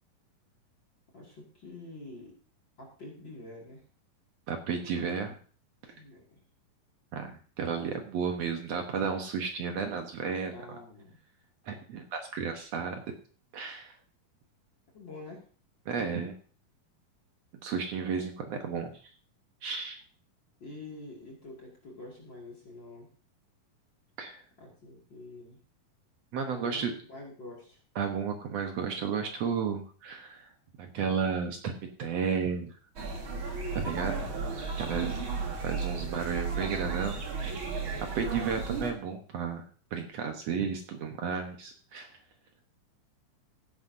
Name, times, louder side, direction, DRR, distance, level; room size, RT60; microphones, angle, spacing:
voice 1, 1.1-2.4 2.8-3.8 5.9-6.4 10.5-11.2 14.9-15.5 20.6-23.1 24.6-25.6 26.5-27.8 35.0-35.4, left 2 dB, 35° left, -2 dB, 2.6 m, -47 dB
voice 2, 4.5-5.4 5.8-5.9 7.1-10.5 11.7-13.0 13.5-14.0 15.9-16.3 17.6-18.9 19.6-20.0 24.2-24.4 26.3-26.9 28.0-30.5 30.8-31.7 32.0-32.8 33.7-34.3 34.8-35.2 35.5-37.5 38.0-39.6 39.9-42.2, right 6 dB, 60° right, 4 dB, 1.8 m, -33 dB
sound 1, 33.0-38.9, right 4 dB, 45° right, 2.2 m, -34 dB
17.0 x 9.9 x 2.7 m, 0.40 s
omnidirectional pair, 4.1 m